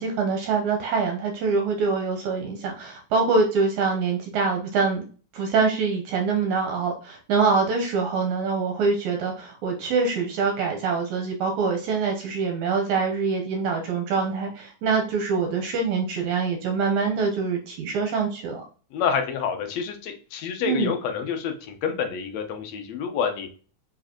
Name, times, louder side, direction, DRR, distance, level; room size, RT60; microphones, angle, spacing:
voice 1, 0.0-5.0 5.3-18.6 20.6-20.9, right 4 dB, 70° right, 2 dB, 2.2 m, -24 dB
voice 2, 18.9-23.5, left 7 dB, 70° left, 5 dB, 1.9 m, -28 dB
5.2 x 4.8 x 4.4 m, 0.40 s
omnidirectional pair, 3.6 m